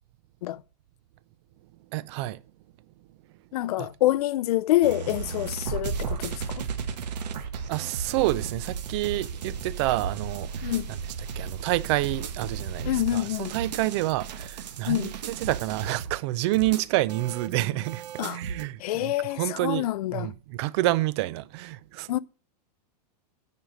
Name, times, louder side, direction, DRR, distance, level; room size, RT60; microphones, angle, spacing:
voice 1, 1.9-2.4 3.8-3.9 7.6-11.0 11.4-19.9 20.1-22.2, right 17 dB, 40° right, 0.5 m, -28 dB
voice 2, 3.5-6.6 10.6-10.9 12.9-13.5 14.9-15.1 18.2-18.4 18.8-20.3 22.1-22.2, left 15 dB, 65° left, 0.4 m, -26 dB
sound 1, 4.8-18.6, right 6 dB, 80° right, 1.4 m, -35 dB
9.4 x 5.0 x 6.2 m
supercardioid pair, 155°, 21 cm